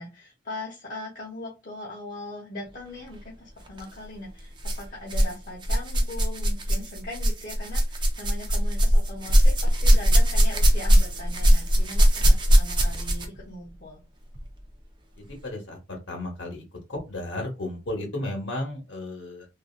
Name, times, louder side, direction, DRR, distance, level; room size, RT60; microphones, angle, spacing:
voice 1, 0.0-14.0, left 2 dB, 50° left, -4 dB, 0.7 m, -40 dB
sound 1, 3.7-3.8 4.6-5.3 5.6-13.4 14.3-14.4 15.2-15.3, equal, 25° right, 0.5 m, -20 dB
voice 2, 15.2-16.6 16.9-19.5, left 1 dB, 80° left, 2 dB, 0.8 m, -34 dB
3.1 x 2.4 x 2.3 m, 0.27 s
head